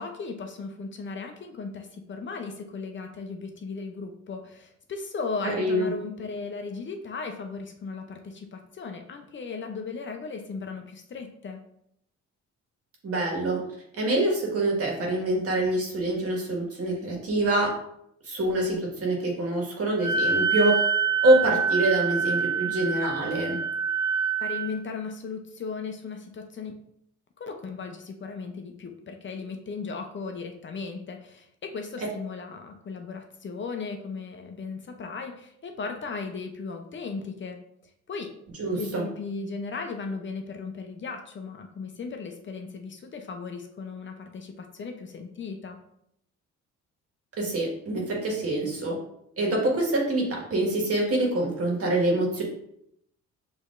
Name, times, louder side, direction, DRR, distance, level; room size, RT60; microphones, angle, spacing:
voice 1, 0.0-11.6 24.4-26.7 27.4-37.6 38.1-38.3 38.7-45.8, left 4 dB, 40° left, 4 dB, 0.6 m, -36 dB
voice 2, 5.4-5.9 13.0-13.6 14.0-17.7 18.2-20.8 21.2-23.6 38.6-39.0 47.4-48.9 49.4-52.4, right 1 dB, 50° right, -1 dB, 1.7 m, -25 dB
Wind instrument woodwind instrument, 20.0-24.7, right 6 dB, 10° right, 0.6 m, -26 dB
6.3 x 3.1 x 2.5 m, 0.74 s
cardioid pair, 90°, 30 cm